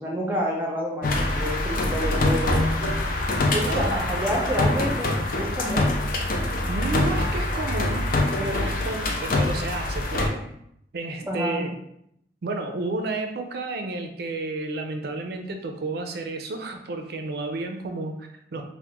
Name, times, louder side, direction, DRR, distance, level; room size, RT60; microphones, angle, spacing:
voice 1, 0.0-2.9 3.4-5.9 11.3-11.6, equal, 10° right, -3 dB, 0.6 m, -29 dB
sound 1, 1.0-10.3, left 2 dB, 50° left, 0.5 m, -24 dB
voice 2, 3.7-4.1 6.7-8.1 8.4-10.5 10.9-11.8 12.4-18.6, right 2 dB, 60° right, 5 dB, 0.4 m, -31 dB
2.9 x 2.1 x 3.4 m, 0.75 s
head